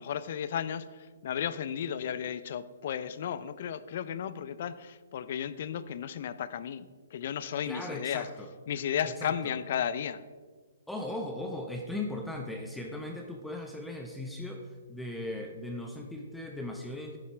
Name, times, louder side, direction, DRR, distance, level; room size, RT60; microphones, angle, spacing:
voice 1, 0.0-8.3 8.7-10.2, left 9 dB, 50° left, 15 dB, 0.5 m, -34 dB
voice 2, 7.6-8.5 9.0-9.5 10.9-17.2, left 1 dB, ahead, 1 dB, 0.7 m, -38 dB
10.0 x 7.1 x 4.5 m, 1.5 s
hypercardioid pair, 145°, 0 cm